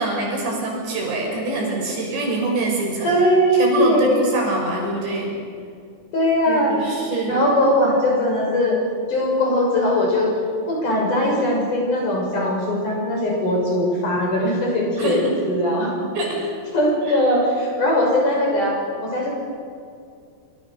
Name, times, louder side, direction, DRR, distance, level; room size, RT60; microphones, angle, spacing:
voice 1, 0.0-3.1 3.5-5.4 6.5-7.4 15.0-15.3 16.1-16.5 17.1-17.2, right 2 dB, 75° right, -1 dB, 8.3 m, -25 dB
voice 2, 3.0-4.3 6.1-6.9 7.3-8.8 9.1-10.4 10.7-15.9 16.7-18.8 19.0-19.3, left 1 dB, 45° left, -1 dB, 7.3 m, -20 dB
26.0 x 26.0 x 6.6 m, 2.3 s
omnidirectional pair, 5.1 m